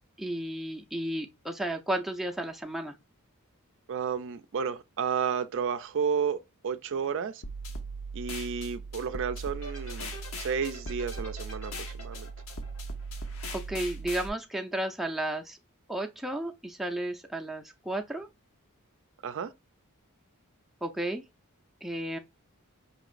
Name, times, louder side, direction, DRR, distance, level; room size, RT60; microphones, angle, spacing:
voice 1, 0.2-2.9 13.5-15.6 15.9-18.3 20.8-21.2 21.8-22.2, right 1 dB, ahead, 0.5 m, -33 dB
voice 2, 3.9-7.4 8.1-12.3 19.2-19.5, right 6 dB, 60° right, 0.4 m, -32 dB
sound 1, 7.4-14.3, right 2 dB, 65° left, 0.8 m, -38 dB
sound 2, 9.5-13.9, left 2 dB, 90° left, 2.4 m, -46 dB
5.2 x 2.9 x 2.4 m
head